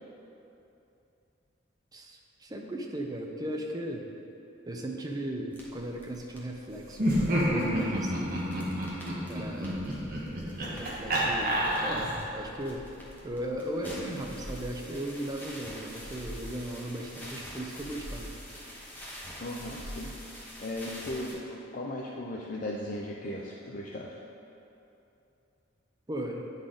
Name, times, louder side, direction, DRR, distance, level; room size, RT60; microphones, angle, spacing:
voice 1, 1.9-4.1 4.7-8.4 9.3-9.9 10.6-12.9 13.2-18.3 26.1-26.4, right 1 dB, 20° right, 1 dB, 0.6 m, -37 dB
sound 1, 5.5-21.3, equal, 10° left, 1.0 m, -45 dB
Laughter, 6.9-12.4, equal, 50° right, 1.2 m, -29 dB
voice 2, 19.4-20.1 20.6-24.2, left 1 dB, 45° left, -2 dB, 0.5 m, -37 dB
9.9 x 4.0 x 3.8 m, 2.8 s
head